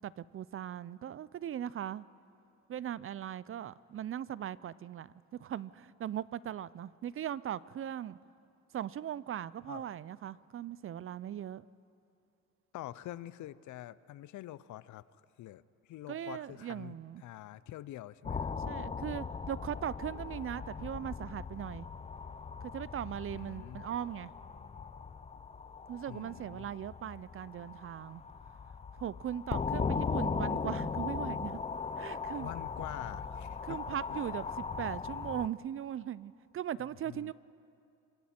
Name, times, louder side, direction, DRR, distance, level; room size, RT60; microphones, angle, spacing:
voice 1, 0.0-2.0 2.7-8.2 8.7-11.7 16.1-17.2 18.7-21.9 22.7-24.3 25.9-28.2 29.0-31.6 32.0-32.5 33.6-37.3, right 10 dB, 45° right, 19 dB, 0.5 m, -39 dB
voice 2, 12.7-15.0 15.4-15.6 15.9-18.6 23.3-23.8 26.1-26.7 32.4-33.8 34.1-34.2 37.1-37.3, left 14 dB, 75° left, 18 dB, 0.6 m, -46 dB
sound 1, 18.2-35.5, left 5 dB, 20° left, 0.5 m, -38 dB
26.0 x 23.5 x 4.4 m, 2.6 s
cardioid pair, 90°, 30 cm